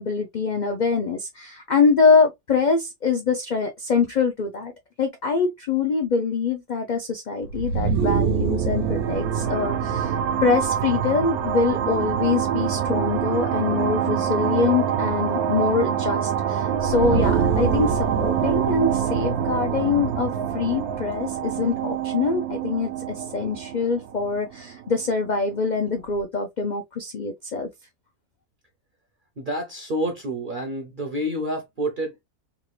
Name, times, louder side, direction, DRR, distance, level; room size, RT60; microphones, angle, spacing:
voice 1, 0.0-4.7 5.0-10.2 10.4-27.7, left 4 dB, 60° left, 0.4 m, -24 dB
sound 1, 7.4-25.1, right 8 dB, 80° right, 1.1 m, -25 dB
voice 2, 29.4-32.2, equal, 50° right, 0.7 m, -28 dB
3.6 x 2.3 x 3.2 m
omnidirectional pair, 1.6 m